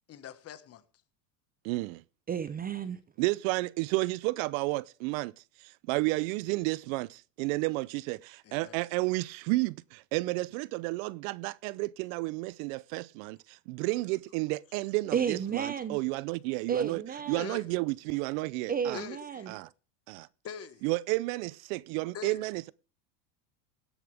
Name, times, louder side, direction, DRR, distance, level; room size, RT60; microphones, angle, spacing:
voice 1, 0.1-0.8 8.4-8.8 17.3-17.7 18.9-19.5 20.4-20.8 22.1-22.4, left 8 dB, 30° left, 1.5 m, -43 dB
voice 2, 1.6-2.0 3.2-5.3 5.6-17.0 17.3-19.0 19.5-19.7 20.1-20.3 20.8-22.7, right 22 dB, 60° right, 0.6 m, -32 dB
voice 3, 2.3-3.0 15.1-16.0 16.7-17.5 18.7-19.6, right 7 dB, 20° right, 0.6 m, -32 dB
17.5 x 10.0 x 3.4 m
supercardioid pair, 130°, 45 cm